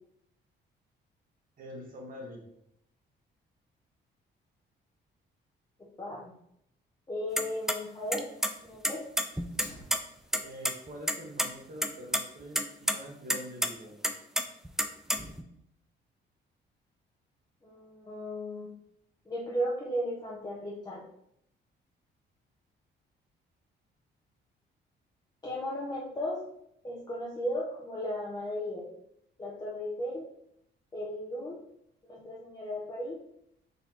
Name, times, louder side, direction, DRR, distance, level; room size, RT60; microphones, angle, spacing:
voice 1, 1.6-2.4 10.4-14.0, equal, 45° right, -1 dB, 1.4 m, -45 dB
voice 2, 6.0-6.3 7.1-8.3 8.6-9.1 17.6-18.7 19.3-21.1 25.4-26.5 26.8-28.9 29.4-30.3 30.9-31.6 32.0-33.2, equal, 20° left, -5 dB, 0.9 m, -35 dB
sound 1, 7.4-7.7 8.1-8.5 8.8-10.0 10.3-10.4 10.6-10.7 11.1-11.5 11.8-12.2 12.5-12.9 13.3-13.7 14.0-15.4, equal, ahead, 0.3 m, -28 dB
Fire, 9.5-10.5, left 1 dB, 65° left, 1.4 m, -51 dB
4.1 x 3.4 x 2.9 m, 0.75 s
cardioid pair, 90°, 20 cm